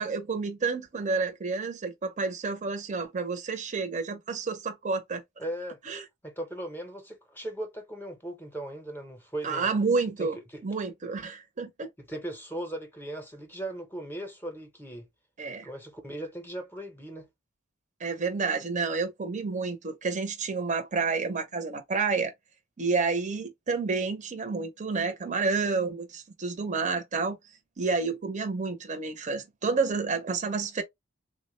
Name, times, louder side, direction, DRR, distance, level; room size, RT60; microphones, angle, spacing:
voice 1, 0.0-5.2 5.9-6.0 9.4-10.4 10.6-11.9 15.4-15.7 18.0-22.3 22.8-27.4 27.8-30.8, right 4 dB, 35° right, 0.6 m, -29 dB
voice 2, 5.4-5.8 6.2-9.7 10.2-10.6 12.0-15.1 15.6-17.3, right 1 dB, 10° left, 0.7 m, -38 dB
3.5 x 2.1 x 3.0 m
head